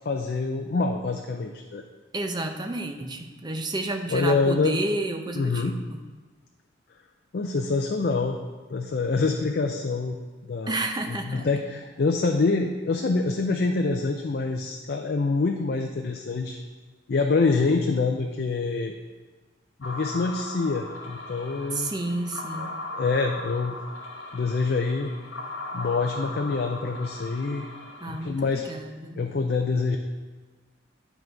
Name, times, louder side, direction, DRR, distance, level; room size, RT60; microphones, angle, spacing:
voice 1, 0.0-1.8 4.1-4.8 5.3-5.8 7.3-8.4 8.7-10.2 10.5-10.8 11.1-16.6 17.1-19.0 19.8-21.9 22.6-23.8 24.3-25.1 25.7-27.6 28.1-28.7 29.2-30.0, left 3 dB, 50° left, 3 dB, 0.4 m, -26 dB
voice 2, 2.1-6.0 10.7-11.5 21.7-22.8 28.0-29.2, right 2 dB, 20° right, 5 dB, 0.6 m, -31 dB
sound 1, 19.8-28.3, left 2 dB, 70° left, 0.8 m, -38 dB
9.8 x 4.0 x 4.5 m, 1.4 s
head